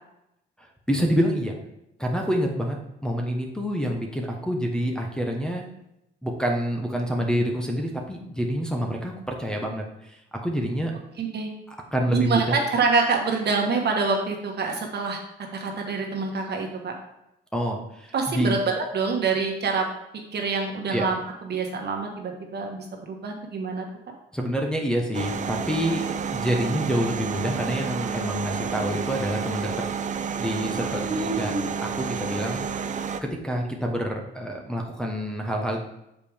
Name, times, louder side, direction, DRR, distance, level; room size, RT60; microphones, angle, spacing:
voice 1, 0.6-1.6 2.0-2.8 3.0-5.7 6.2-10.9 11.7-12.6 17.5-18.6 20.9-21.1 24.3-26.0 26.3-29.9 30.4-31.5 31.8-32.7 33.2-35.8, equal, 5° left, -1 dB, 1.0 m, -27 dB
voice 2, 11.2-11.5 12.1-15.2 15.5-17.0 18.1-19.8 20.3-21.2 21.4-23.8 31.1-31.6, right 4 dB, 55° right, 2 dB, 1.4 m, -26 dB
sound 1, 25.1-33.2, right 6 dB, 40° right, 0.5 m, -30 dB
6.8 x 4.8 x 3.5 m, 0.85 s
cardioid pair, 90°, 20 cm